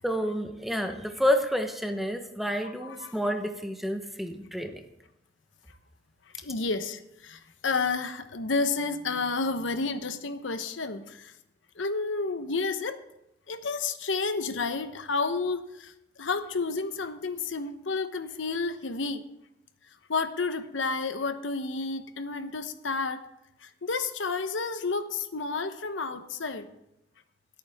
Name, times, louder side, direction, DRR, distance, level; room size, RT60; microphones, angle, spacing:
voice 1, 0.0-4.8, equal, ahead, 5 dB, 1.0 m, -29 dB
voice 2, 6.4-11.3 11.8-13.0 13.5-15.9 16.2-19.2 20.1-23.2 23.6-26.7, left 4 dB, 90° left, 9 dB, 1.0 m, -31 dB
22.0 x 8.8 x 3.6 m, 0.84 s
head